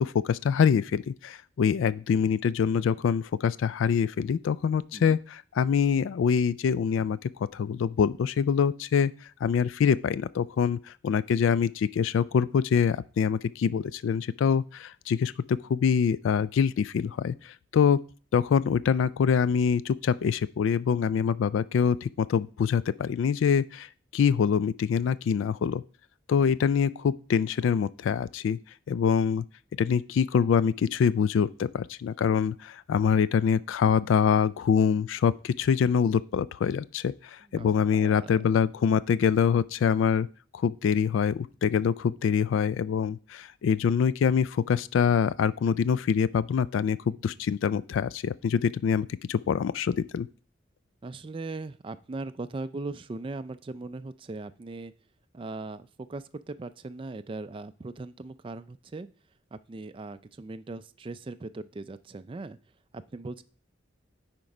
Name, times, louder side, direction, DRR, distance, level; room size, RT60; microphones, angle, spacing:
voice 1, 0.0-9.1 9.4-18.0 18.3-23.9 24.1-25.8 26.3-28.6 28.9-29.4 29.8-40.3 40.5-50.3, left 7 dB, 80° left, 0.3 m, -25 dB
voice 2, 38.0-38.5 51.0-54.9 55.3-59.1 59.5-62.6 62.9-63.4, right 3 dB, 25° right, 0.3 m, -39 dB
9.2 x 4.5 x 4.9 m
head